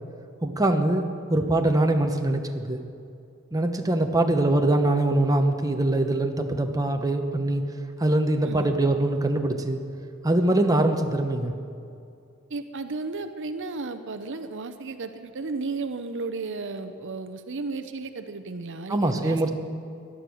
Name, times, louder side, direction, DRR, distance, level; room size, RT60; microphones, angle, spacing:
voice 1, 0.4-1.0 1.3-2.8 3.5-7.6 8.0-9.8 10.2-11.5 18.9-19.5, right 1 dB, 15° right, 5 dB, 0.9 m, -23 dB
voice 2, 8.4-8.8 12.5-19.5, right 3 dB, 60° right, 9 dB, 0.8 m, -34 dB
17.5 x 11.5 x 6.4 m, 2.5 s
head